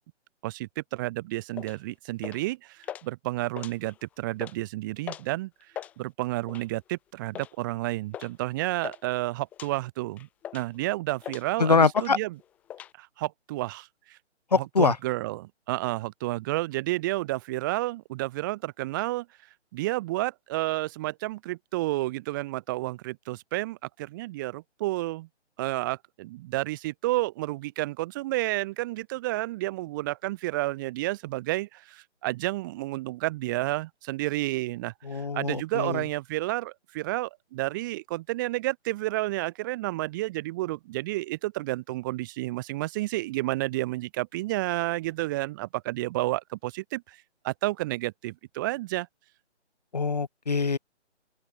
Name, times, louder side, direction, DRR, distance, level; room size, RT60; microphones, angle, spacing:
voice 1, 0.4-5.5 6.0-10.3 10.5-12.4 13.0-14.2 14.5-19.3 19.7-25.3 25.6-47.2 47.4-49.1, right 18 dB, 15° right, 1.8 m, -31 dB
sound 1, 1.6-1.8 2.2-2.5 2.8-3.1 3.5-4.0 4.3-4.6 5.1-5.3 5.6-5.9 6.5-6.8 7.3-7.5 8.1-8.3 8.6-9.0 9.5-9.7 10.2-10.8 11.2-11.6 12.0-12.1 12.4-12.9, left 11 dB, 5° left, 0.9 m, -39 dB
voice 2, 11.6-12.2 14.5-14.9 35.1-36.0 49.9-50.8, left 4 dB, 35° left, 0.5 m, -23 dB
open air
figure-of-eight pair, 145°, 35 cm